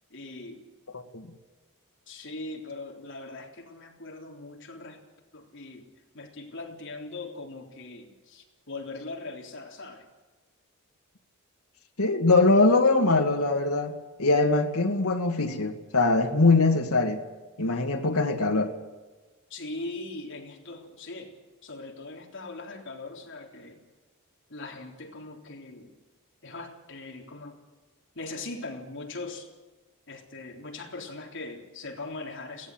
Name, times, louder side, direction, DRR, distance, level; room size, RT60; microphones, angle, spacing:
voice 1, 0.1-0.6 2.1-5.0 5.3-10.1 19.5-21.4 21.6-23.9 24.5-26.0 26.4-27.6 28.2-29.5 30.1-32.7, left 2 dB, 60° left, 3.7 m, -40 dB
voice 2, 12.0-13.9 14.2-17.2 17.6-18.7, left 3 dB, 85° left, 2.0 m, -22 dB
22.5 x 17.5 x 7.8 m
head